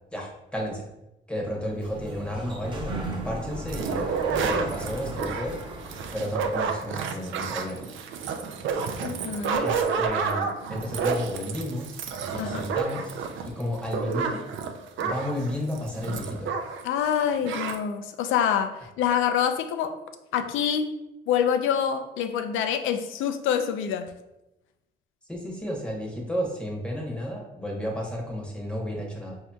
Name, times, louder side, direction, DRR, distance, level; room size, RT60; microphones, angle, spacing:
voice 1, 0.1-0.8 1.3-5.6 6.1-7.9 9.6-12.0 12.3-14.5 15.0-16.5 25.3-29.4, equal, 5° left, -1 dB, 0.9 m, -32 dB
Sliding door, 1.5-6.7, right 1 dB, 25° right, 0.7 m, -37 dB
sound 1, 3.7-16.9 17.1-17.2 17.4-17.8, right 5 dB, 75° right, 0.4 m, -30 dB
voice 2, 9.0-9.6 12.4-12.7 16.8-20.0 20.3-20.9 21.3-24.1, left 8 dB, 85° left, 8 dB, 0.4 m, -26 dB
4.9 x 2.7 x 2.3 m, 0.94 s
cardioid pair, 90°, 20 cm